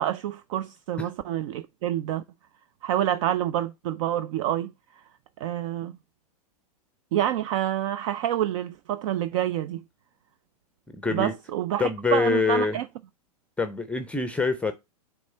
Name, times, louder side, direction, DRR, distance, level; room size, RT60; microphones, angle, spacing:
voice 1, 0.0-2.2 2.8-4.7 5.4-5.9 7.1-9.8 11.1-12.9, right 12 dB, 55° right, 0.4 m, -27 dB
voice 2, 11.0-11.3 11.8-12.8 13.6-14.7, left 4 dB, 5° left, 0.6 m, -25 dB
6.2 x 3.5 x 5.5 m
hypercardioid pair, 120°, 20 cm